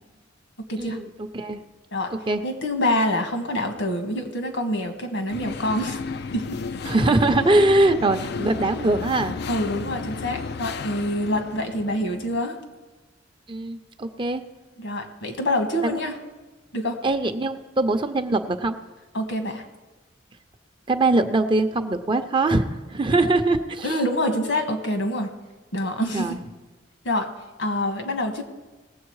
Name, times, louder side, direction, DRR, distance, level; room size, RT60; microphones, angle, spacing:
voice 1, 0.8-1.1 1.3-1.6 2.3-2.4 6.9-9.4 13.5-14.4 17.0-18.8 20.9-24.0 26.1-26.4, right 2 dB, 25° right, 8 dB, 0.6 m, -22 dB
voice 2, 2.4-6.0 6.3-6.6 9.5-12.6 14.8-16.1 16.7-17.0 19.1-19.7 23.8-25.3 25.7-26.4 27.0-27.3 27.6-28.4, left 1 dB, 75° left, 5 dB, 1.7 m, -26 dB
sound 1, 5.3-12.4, left 4 dB, 60° left, 0.4 m, -33 dB
19.5 x 7.7 x 4.8 m, 1.2 s
head